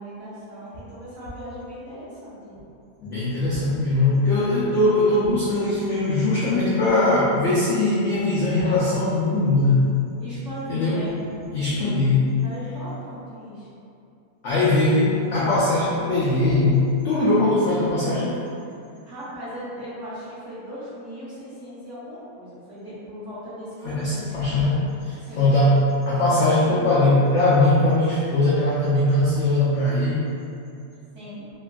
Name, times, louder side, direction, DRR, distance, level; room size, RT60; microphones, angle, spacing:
voice 1, 0.0-2.6 10.2-11.5 12.4-13.8 19.0-24.3 25.2-25.5 31.1-31.4, equal, 55° right, -11 dB, 1.0 m, -38 dB
voice 2, 3.0-9.8 10.7-11.0 11.5-12.3 14.4-18.4 23.8-30.3, left 2 dB, 80° left, -9 dB, 0.6 m, -20 dB
3.1 x 2.4 x 2.2 m, 2.6 s
omnidirectional pair, 1.8 m